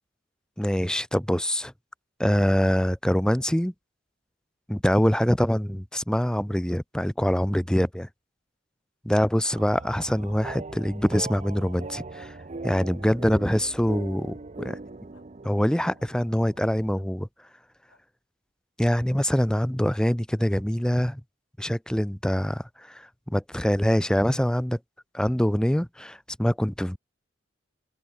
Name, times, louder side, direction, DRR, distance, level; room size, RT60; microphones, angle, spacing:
voice 1, 0.6-1.7 2.2-3.7 4.7-8.1 9.0-12.3 12.6-14.8 15.4-17.3 18.8-21.2 21.6-24.8 25.1-27.0, equal, 5° left, 0.6 m, -24 dB
sound 1, 9.5-17.0, right 3 dB, 35° right, 0.8 m, -40 dB
sound 2, 15.1-15.3 16.0-16.1 16.9-17.1 17.9-18.0 19.5-19.6 20.5-20.7, left 3 dB, 75° left, 6.6 m, -59 dB
head